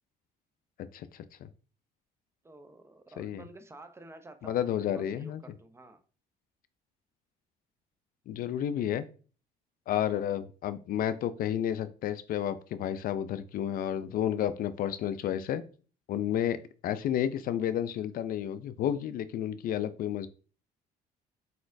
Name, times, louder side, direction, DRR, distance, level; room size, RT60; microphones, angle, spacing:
voice 1, 0.9-1.5 3.2-3.4 4.4-5.4 8.3-9.0 9.9-15.6 16.1-20.3, left 10 dB, 60° left, 13 dB, 0.4 m, -31 dB
voice 2, 2.4-6.0, right 2 dB, 15° right, 8 dB, 0.5 m, -51 dB
4.6 x 4.2 x 2.5 m, 0.38 s
cardioid pair, 110°, 17 cm